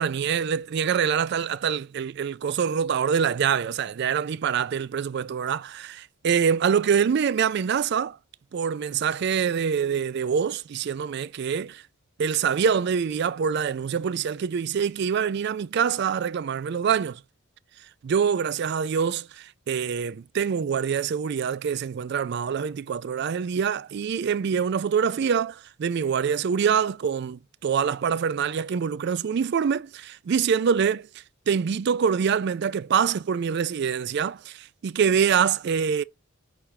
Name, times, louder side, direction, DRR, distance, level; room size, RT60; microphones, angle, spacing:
voice 1, 0.0-8.2 8.5-11.8 12.2-17.2 18.0-36.0, right 7 dB, 50° right, 0.3 m, -25 dB
5.8 x 3.3 x 5.7 m
head